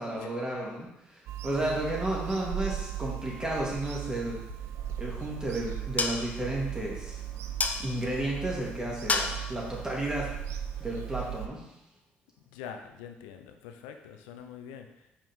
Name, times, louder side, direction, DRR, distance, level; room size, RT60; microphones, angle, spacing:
voice 1, 0.0-4.4 5.0-7.2 7.8-10.3 10.8-11.6, right 1 dB, 15° right, -3 dB, 2.3 m, -32 dB
Bird vocalization bird call bird song / Telephone, 1.3-11.5, right 11 dB, 70° right, 0.4 m, -38 dB
sound 1, 4.8-11.2, left 4 dB, 30° left, 0.7 m, -36 dB
voice 2, 12.5-14.9, left 8 dB, 85° left, 6 dB, 0.6 m, -44 dB
5.5 x 4.9 x 3.6 m, 0.86 s
hypercardioid pair, 60°, 5 cm